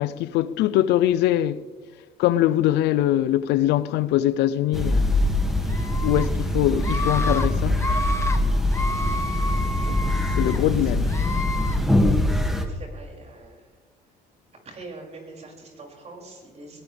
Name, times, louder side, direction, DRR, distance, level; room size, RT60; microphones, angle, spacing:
voice 1, 0.0-1.6 2.2-5.2 6.0-7.9 9.9-10.0 10.4-11.1, left 13 dB, 85° left, 0.6 m, -22 dB
sound 1, 4.7-12.7, left 1 dB, ahead, 2.3 m, -23 dB
Screaming, 5.7-6.3 6.8-7.5 7.7-8.4 8.7-10.6 11.1-11.8, left 2 dB, 15° left, 1.6 m, -30 dB
voice 2, 12.0-13.7 14.6-16.8, right 3 dB, 40° right, 6.4 m, -43 dB
21.5 x 18.5 x 3.5 m
cardioid pair, 110°, 17 cm